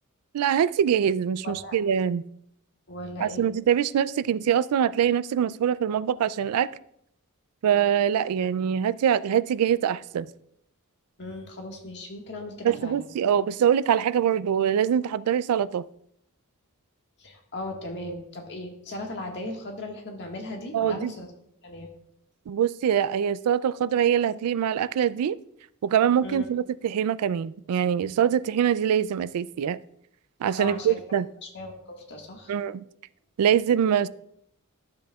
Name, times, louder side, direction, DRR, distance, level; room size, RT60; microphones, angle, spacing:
voice 1, 0.3-2.2 3.2-6.7 7.6-10.3 12.6-15.8 20.7-21.1 22.5-25.4 25.8-29.8 30.4-31.3 32.5-32.8 33.4-34.1, right 9 dB, 80° right, 0.3 m, -24 dB
voice 2, 1.4-1.8 2.9-3.5 11.2-13.1 17.2-21.3 21.6-21.9 26.2-26.5 30.6-31.0 31.4-32.6, left 1 dB, 50° left, 1.6 m, -37 dB
12.0 x 7.5 x 2.3 m
head